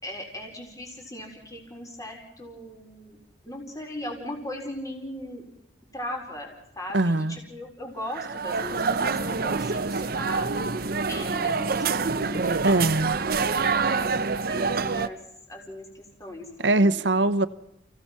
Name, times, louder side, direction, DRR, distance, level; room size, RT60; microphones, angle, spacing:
voice 1, 0.0-3.2 3.4-5.5 5.9-10.5 11.1-12.6 13.6-15.2 15.5-17.0, left 1 dB, 20° left, 1 dB, 4.2 m, -38 dB
voice 2, 6.9-7.4 12.6-13.2 16.6-17.5, right 2 dB, 75° right, 14 dB, 1.0 m, -21 dB
sound 1, 8.1-15.1, right 4 dB, 55° right, 0.8 m, -26 dB
28.5 x 16.5 x 5.8 m, 0.81 s
head